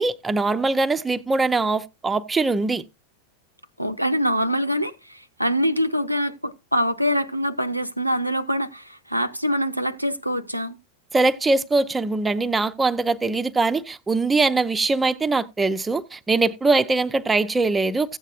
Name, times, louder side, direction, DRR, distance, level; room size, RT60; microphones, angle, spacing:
voice 1, 0.0-2.8 11.1-18.2, right 3 dB, 10° right, 0.5 m, -22 dB
voice 2, 3.8-10.8, equal, 90° right, 0.6 m, -24 dB
15.5 x 8.2 x 2.4 m
figure-of-eight pair, 90°, 0 cm